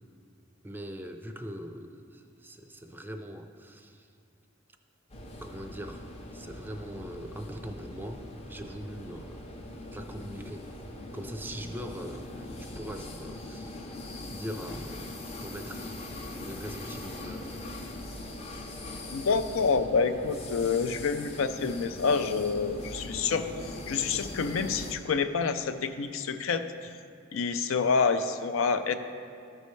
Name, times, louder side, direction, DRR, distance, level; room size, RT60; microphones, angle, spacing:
voice 1, 0.6-4.1 5.4-9.4 9.9-10.7 11.1-13.8 14.3-15.1 15.4-15.9 16.4-17.6, equal, 10° right, 6 dB, 0.4 m, -41 dB
sound 1, 5.1-24.9, left 2 dB, 30° left, 0.6 m, -41 dB
voice 2, 19.1-26.6 27.3-29.0, left 5 dB, 85° left, 9 dB, 0.4 m, -28 dB
13.5 x 5.4 x 3.1 m, 2.3 s
head